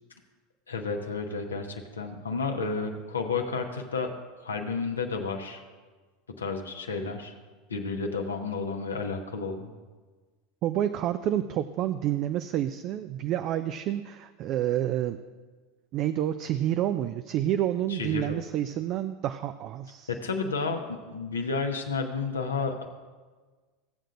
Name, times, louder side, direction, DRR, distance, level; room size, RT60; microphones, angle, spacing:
voice 1, 0.7-4.1 4.4-5.6 6.3-7.3 7.7-9.7 17.9-18.4 20.1-22.8, left 4 dB, 80° left, 3 dB, 0.9 m, -31 dB
voice 2, 10.6-15.2 15.9-20.1, right 11 dB, 45° right, 10 dB, 0.3 m, -29 dB
16.0 x 7.6 x 2.5 m, 1.4 s
figure-of-eight pair, 80°, 0 cm